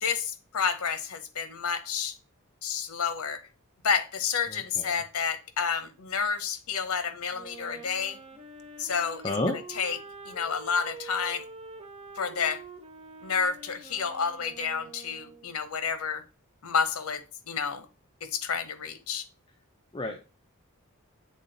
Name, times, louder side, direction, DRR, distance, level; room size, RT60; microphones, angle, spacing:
voice 1, 0.0-2.2 2.6-3.4 3.8-8.2 8.8-10.0 10.2-11.4 12.2-12.6 13.2-16.2 16.6-17.9 18.2-19.3, left 6 dB, 80° left, 0.8 m, -30 dB
voice 2, 4.5-5.0 9.2-9.6 19.9-20.2, left 2 dB, 25° left, 0.6 m, -31 dB
Wind instrument woodwind instrument, 7.3-15.6, right 3 dB, 25° right, 0.8 m, -46 dB
7.4 x 3.7 x 3.9 m
head